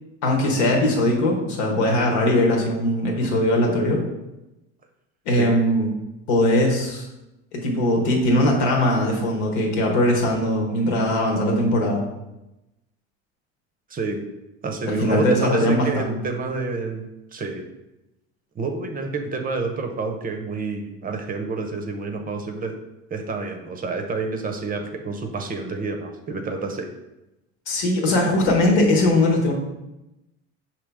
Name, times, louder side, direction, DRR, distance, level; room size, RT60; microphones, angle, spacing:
voice 1, 0.2-4.0 5.2-5.9 6.3-7.1 7.5-12.0 14.8-16.1 27.7-29.5, left 1 dB, 80° left, 0 dB, 1.2 m, -20 dB
voice 2, 13.9-14.2 14.6-17.0 17.3-17.7 18.6-22.7 23.1-26.9, right 4 dB, 25° right, 4 dB, 0.6 m, -29 dB
5.1 x 2.8 x 3.5 m, 0.95 s
supercardioid pair, 110°, 32 cm